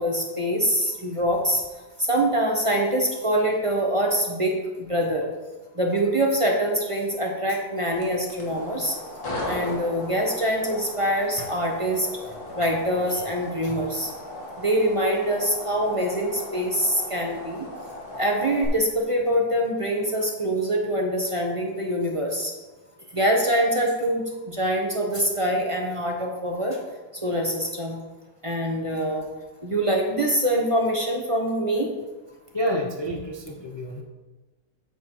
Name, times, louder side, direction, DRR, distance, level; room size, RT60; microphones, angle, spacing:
voice 1, 0.0-1.6 2.1-4.6 4.9-5.3 5.8-8.9 9.5-12.1 12.6-14.1 14.6-17.6 18.1-22.5 23.1-24.2 24.5-26.8 27.2-28.0 28.4-29.2 29.6-31.9, right 1 dB, 25° right, 1 dB, 0.8 m, -24 dB
sound 1, 7.9-18.7, left 1 dB, 75° left, 2.2 m, -37 dB
voice 2, 32.5-34.0, equal, 30° left, 0 dB, 0.4 m, -28 dB
8.8 x 8.4 x 3.1 m, 1.2 s
omnidirectional pair, 1.6 m